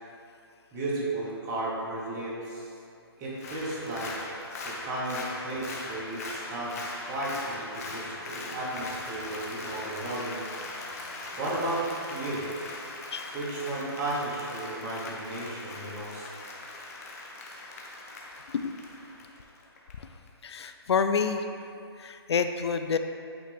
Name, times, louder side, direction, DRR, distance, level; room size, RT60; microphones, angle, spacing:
voice 1, 0.7-2.8 3.2-4.1 4.6-6.8 7.1-10.4 11.4-12.4 13.3-16.3, right 2 dB, 15° right, -6 dB, 1.0 m, -34 dB
Applause, 3.3-19.9 20.3-20.4, left 2 dB, 35° left, 0.7 m, -40 dB
sound 1, 5.5-13.3, left 1 dB, 5° left, 0.4 m, -47 dB
voice 2, 20.4-21.4 22.0-23.0, left 6 dB, 85° left, 8 dB, 0.4 m, -27 dB
8.6 x 3.3 x 3.4 m, 2.5 s
hypercardioid pair, 165°, 14 cm